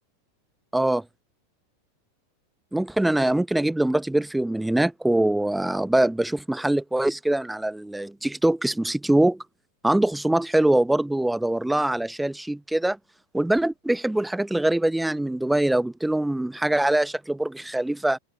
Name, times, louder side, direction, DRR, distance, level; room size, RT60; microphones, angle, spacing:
voice 1, 0.7-1.0 2.7-9.4 9.8-13.0 13.3-18.2, right 1 dB, 5° right, 1.0 m, -23 dB
figure-of-eight pair, 90°, 0 cm